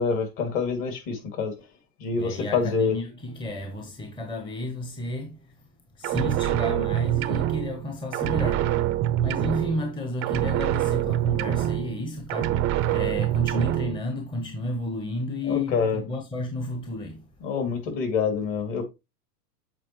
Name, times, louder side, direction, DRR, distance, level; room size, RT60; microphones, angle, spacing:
voice 1, 0.0-1.5 2.0-2.9 15.5-16.0 17.4-18.8, left 5 dB, 45° left, 2.5 m, -26 dB
voice 2, 2.1-5.5 5.9-8.9 9.2-17.3, left 1 dB, 10° left, 0.9 m, -32 dB
sound 1, 6.0-7.9 8.1-10.0 10.2-12.0 12.3-14.0, right 13 dB, 30° right, 0.5 m, -25 dB
7.6 x 4.3 x 3.0 m
hypercardioid pair, 120°, 47 cm